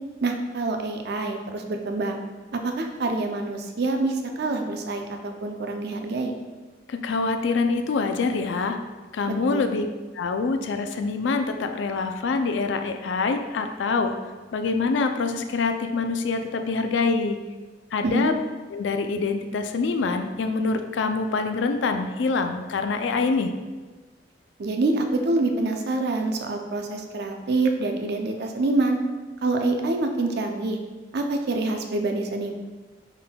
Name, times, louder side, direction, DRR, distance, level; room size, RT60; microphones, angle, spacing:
voice 1, 0.2-2.2 2.5-6.3 9.5-9.7 18.0-18.3 24.6-29.0 29.4-30.8 31.1-32.5, right 2 dB, 60° right, 4 dB, 0.5 m, -26 dB
voice 2, 6.9-8.8 9.1-9.9 10.1-14.1 14.5-17.4 17.9-18.3 18.7-23.5, left 4 dB, 70° left, 7 dB, 0.4 m, -25 dB
5.6 x 3.6 x 2.2 m, 1.3 s
head